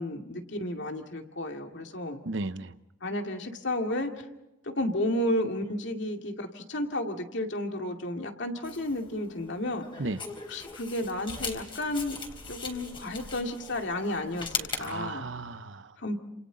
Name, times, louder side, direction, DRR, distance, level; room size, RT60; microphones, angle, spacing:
voice 1, 0.0-2.2 3.0-4.3 4.6-9.8 10.5-12.2 12.5-15.3 16.0-16.2, left 1 dB, 65° left, 4 dB, 2.4 m, -32 dB
voice 2, 2.2-2.7 10.0-10.2 14.8-16.2, right 2 dB, 70° right, 12 dB, 0.9 m, -35 dB
sound 1, 8.6-14.9, left 4 dB, 25° left, 3.8 m, -39 dB
29.0 x 28.0 x 4.1 m, 0.94 s
head